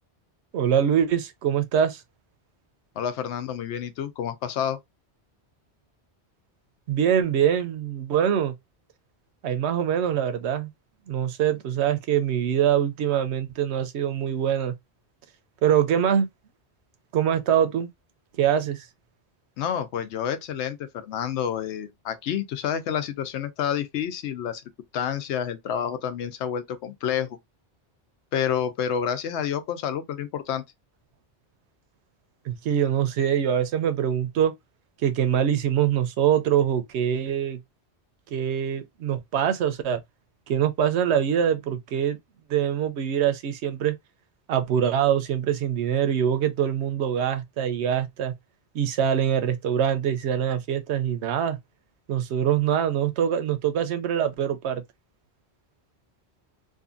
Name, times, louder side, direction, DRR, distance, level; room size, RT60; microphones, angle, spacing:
voice 1, 0.5-2.0 6.9-8.5 9.4-10.7 11.1-14.7 15.6-16.3 17.1-17.9 18.4-18.8 32.5-34.5 35.0-37.6 38.3-40.0 40.5-42.2 42.5-43.9 44.5-48.3 48.7-51.6 52.1-54.8, right 9 dB, 85° right, 0.9 m, -24 dB
voice 2, 3.0-4.8 19.6-24.6 24.9-27.4 28.3-30.6, left 8 dB, 90° left, 0.9 m, -29 dB
2.7 x 2.5 x 2.4 m
omnidirectional pair, 1.1 m